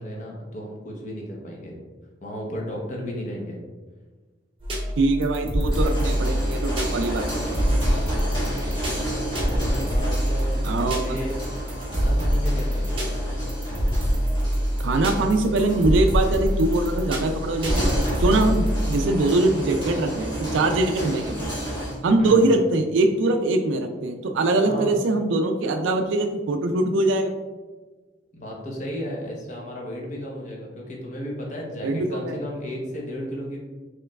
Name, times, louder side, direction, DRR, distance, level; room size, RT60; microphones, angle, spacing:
voice 1, 0.0-1.8 2.2-3.6 8.4-8.8 9.3-11.3 11.8-13.2 22.2-22.5 24.6-24.9 28.3-33.6, equal, 40° left, -1 dB, 0.8 m, -34 dB
sound 1, 4.6-19.0, equal, 30° right, 0.7 m, -25 dB
voice 2, 5.0-7.4 10.6-11.2 14.8-17.9 18.2-21.6 22.0-27.3 31.8-32.4, right 2 dB, 80° right, 5 dB, 0.3 m, -22 dB
sound 2, 5.6-22.0, equal, 25° left, 1.2 m, -32 dB
4.5 x 3.1 x 2.3 m, 1.3 s
head